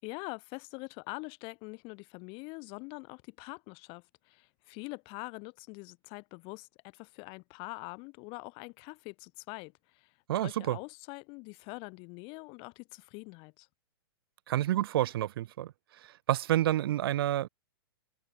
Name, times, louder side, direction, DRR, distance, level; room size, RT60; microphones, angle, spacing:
voice 1, 0.0-10.1 10.4-13.7, left 30 dB, 40° left, 5.4 m, -44 dB
voice 2, 10.3-10.8 14.5-15.7 16.0-17.5, right 13 dB, 60° right, 3.9 m, -29 dB
hypercardioid pair, 130°, 14 cm